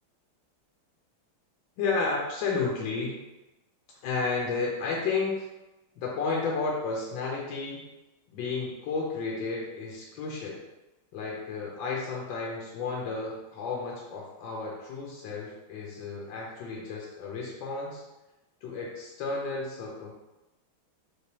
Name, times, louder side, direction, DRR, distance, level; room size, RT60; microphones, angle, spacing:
voice 1, 1.8-3.2 4.0-5.4 6.0-7.8 8.3-10.6 11.1-18.0 18.6-20.1, left 4 dB, 70° left, -3 dB, 1.2 m, -32 dB
3.3 x 3.1 x 2.9 m, 1.0 s
omnidirectional pair, 2.3 m